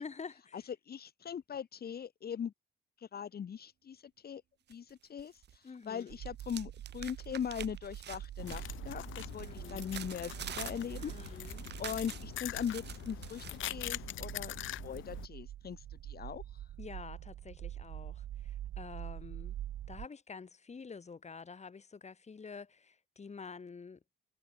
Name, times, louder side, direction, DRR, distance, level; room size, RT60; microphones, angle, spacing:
voice 1, 0.0-0.7 5.6-6.2 9.4-9.9 11.0-11.7 16.8-19.6 19.9-24.0, left 5 dB, 35° left, 5.6 m, -48 dB
voice 2, 0.5-2.5 3.0-4.4 4.7-11.5 11.8-16.7, left 8 dB, 50° left, 3.2 m, -41 dB
sound 1, 4.7-5.6 5.8-13.7, right 10 dB, 60° right, 1.1 m, -48 dB
sound 2, 6.1-20.1, right 12 dB, 75° right, 3.6 m, -45 dB
sound 3, 8.4-15.3, left 13 dB, 80° left, 3.5 m, -43 dB
cardioid pair, 90°, 20 cm